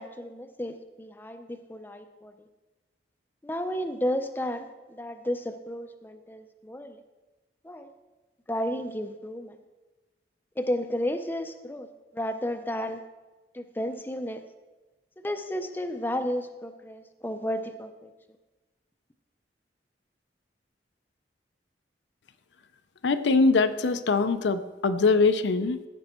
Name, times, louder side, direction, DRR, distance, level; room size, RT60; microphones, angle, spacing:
voice 1, 0.0-2.3 3.4-7.0 7.6-7.9 8.5-9.6 10.6-11.9 12.1-13.0 13.5-14.4 15.2-18.1, equal, 10° left, 7 dB, 0.5 m, -32 dB
voice 2, 23.0-25.8, left 4 dB, 80° left, 10 dB, 0.5 m, -22 dB
15.5 x 5.4 x 4.4 m, 1.2 s
head